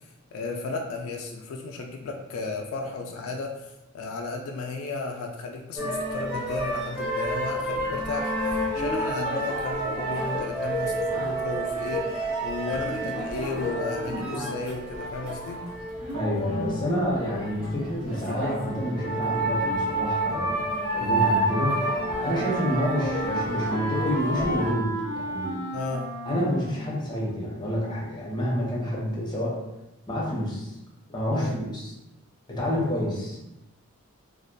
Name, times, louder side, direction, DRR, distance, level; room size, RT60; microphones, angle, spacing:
voice 1, 0.3-15.6 25.7-26.1 31.3-31.6, left 3 dB, 75° left, 2 dB, 0.3 m, -34 dB
sound 1, 5.8-24.7, right 1 dB, 5° right, 0.8 m, -29 dB
voice 2, 16.1-20.6 20.9-21.8 22.2-25.6 26.3-29.6 30.1-30.7 31.1-31.9 32.5-33.4, equal, 20° left, -5 dB, 0.6 m, -28 dB
Wind instrument woodwind instrument, 21.0-27.9, right 1 dB, 55° right, 0.7 m, -34 dB
2.4 x 2.1 x 2.5 m, 0.93 s
head